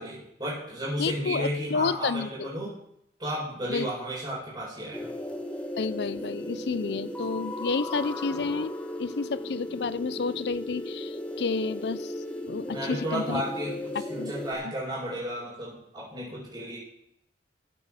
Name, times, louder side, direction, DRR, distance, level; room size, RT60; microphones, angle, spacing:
voice 1, 0.0-2.7 3.2-5.1 12.7-16.8, right 1 dB, 25° right, -10 dB, 5.0 m, -33 dB
voice 2, 1.0-2.5 3.7-3.9 5.8-8.7 9.0-12.1 12.5-13.4 13.9-14.7, left 4 dB, 70° left, 17 dB, 0.5 m, -30 dB
sound 1, 4.9-14.5, left 1 dB, 10° left, 1.1 m, -36 dB
14.5 x 8.1 x 4.9 m, 0.76 s
head